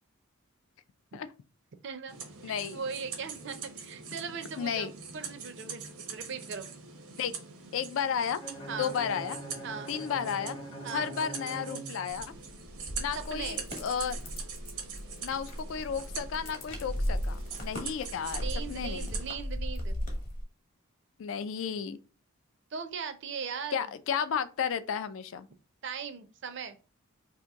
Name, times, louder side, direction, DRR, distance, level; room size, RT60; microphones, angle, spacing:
voice 1, 1.8-2.1 2.4-5.8 6.1-6.7 8.7-8.9 9.6-9.9 10.8-11.1 13.1-13.6 18.4-20.0 22.7-23.9 25.8-26.8, right 6 dB, 55° right, 0.5 m, -39 dB
sound 1, 2.1-19.3, right 6 dB, 90° right, 0.8 m, -44 dB
voice 2, 2.4-2.8 4.6-4.9 7.2-7.3 7.7-8.4 8.8-9.4 9.9-10.6 10.9-12.3 13.0-14.2 15.2-19.2 21.2-22.0 23.7-25.5, left 7 dB, 65° left, 0.3 m, -33 dB
Bowed string instrument, 8.4-12.5, right 1 dB, 20° left, 0.6 m, -43 dB
sound 2, 12.2-20.4, equal, 35° left, 1.0 m, -36 dB
2.8 x 2.5 x 3.5 m
head